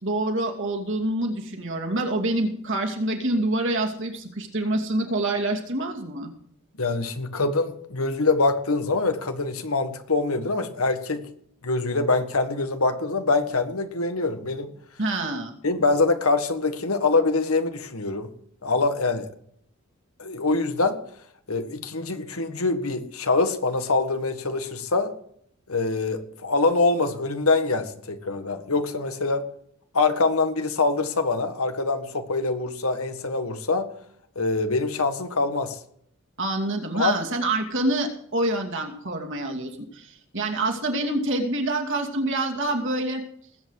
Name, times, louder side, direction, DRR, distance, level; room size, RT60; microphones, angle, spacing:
voice 1, 0.0-6.3 15.0-15.5 36.4-43.2, right 2 dB, 60° right, 2 dB, 2.5 m, -26 dB
voice 2, 6.8-11.2 11.6-14.7 15.6-18.3 18.6-19.3 20.2-21.0 21.5-25.1 25.7-29.4 29.9-33.9 34.3-35.8 36.9-37.2, left 3 dB, 85° left, 7 dB, 1.7 m, -24 dB
20.0 x 8.4 x 4.8 m, 0.66 s
head